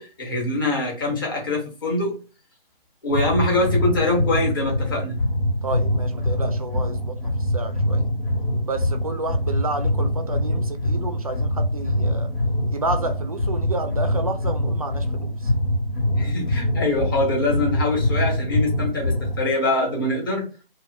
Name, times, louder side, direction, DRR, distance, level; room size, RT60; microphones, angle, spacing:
voice 1, 0.0-2.2 3.0-5.2 16.2-20.5, left 2 dB, 20° left, 0.9 m, -24 dB
sound 1, 3.1-19.5, left 1 dB, 75° left, 1.2 m, -24 dB
voice 2, 5.6-8.0 8.6-12.3 12.7-15.5, right 3 dB, 40° right, 0.4 m, -31 dB
2.4 x 2.2 x 3.7 m
figure-of-eight pair, 150°, 29 cm